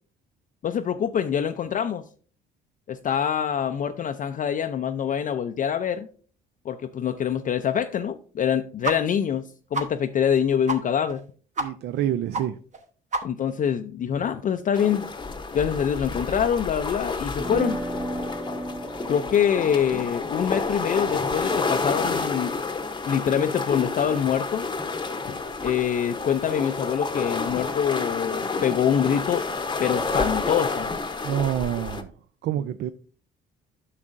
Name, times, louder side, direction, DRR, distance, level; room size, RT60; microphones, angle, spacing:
voice 1, 0.6-2.0 2.9-6.1 6.7-11.2 13.2-15.1 15.5-17.8 19.1-22.6 23.1-24.7 25.2-25.3 25.6-29.4 29.8-30.9, left 8 dB, 45° left, 0.4 m, -25 dB
sound 1, 8.8-9.0 9.3-9.4 9.7-9.9 10.2-10.3 10.7-10.8 11.1-11.2 11.5-11.7 12.0-12.1 12.3-12.4 12.7-12.8 13.1-13.5, right 2 dB, 40° right, 1.1 m, -28 dB
voice 2, 11.6-12.6 31.2-32.1 32.4-32.9, right 11 dB, 60° right, 0.4 m, -27 dB
sound 2, 14.7-32.0, left 4 dB, 25° left, 0.8 m, -30 dB
sound 3, 17.4-23.4, right 1 dB, 10° right, 0.6 m, -36 dB
9.6 x 6.1 x 2.5 m
supercardioid pair, 70°, 19 cm